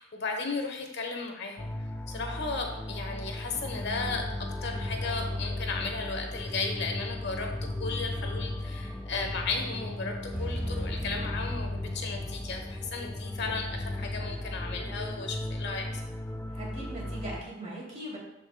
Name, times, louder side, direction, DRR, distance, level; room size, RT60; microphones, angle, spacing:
voice 1, 0.0-1.7 2.1-15.9, left 4 dB, 60° left, 3 dB, 1.1 m, -35 dB
sound 1, 1.6-17.4, left 1 dB, 15° left, 0.4 m, -36 dB
sound 2, 10.3-14.1, right 1 dB, 10° right, 2.8 m, -41 dB
voice 2, 16.5-18.2, right 1 dB, 40° right, -5 dB, 2.9 m, -40 dB
13.0 x 5.0 x 2.3 m, 0.93 s
head